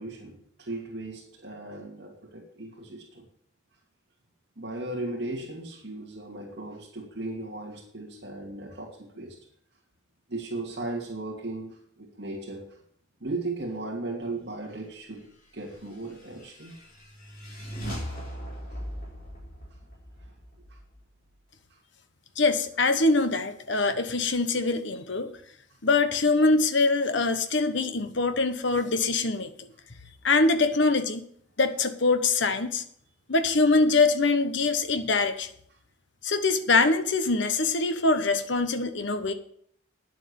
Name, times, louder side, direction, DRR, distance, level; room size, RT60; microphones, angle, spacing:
voice 1, 0.0-3.3 4.6-9.4 10.3-12.8 13.2-15.3 15.5-16.8 18.7-18.8 20.2-20.3 20.7-20.8, right 2 dB, 55° right, -1 dB, 2.6 m, -37 dB
sound 1, 15.7-21.3, equal, 45° left, 4.3 m, -40 dB
voice 2, 22.4-25.3 25.8-29.7 30.2-31.3 31.6-32.8 33.3-35.5 36.2-39.3, left 3 dB, 65° left, 9 dB, 1.1 m, -24 dB
10.0 x 7.7 x 7.0 m, 0.64 s
head